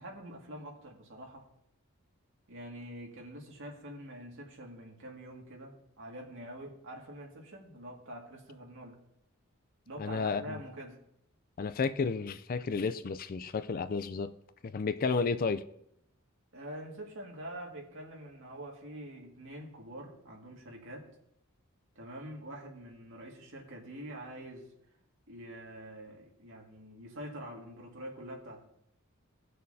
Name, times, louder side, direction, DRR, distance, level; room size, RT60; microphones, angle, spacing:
voice 1, 0.0-1.4 2.5-9.0 9.9-11.0 16.5-21.1 22.0-24.7 25.3-28.6, right 1 dB, 60° right, 2.0 m, -45 dB
voice 2, 10.0-10.6 11.6-14.3 14.6-15.6, left 4 dB, 40° left, 0.4 m, -32 dB
18.0 x 6.4 x 2.7 m
head